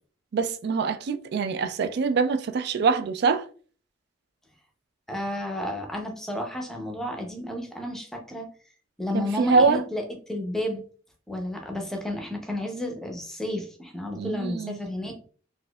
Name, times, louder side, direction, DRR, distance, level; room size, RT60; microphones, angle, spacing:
voice 1, 0.3-3.4 9.1-9.8 14.2-14.8, right 4 dB, 55° right, 0.3 m, -24 dB
voice 2, 5.1-8.5 9.0-10.0 10.3-10.8 11.3-15.2, left 1 dB, ahead, 0.6 m, -32 dB
4.1 x 2.6 x 2.2 m
head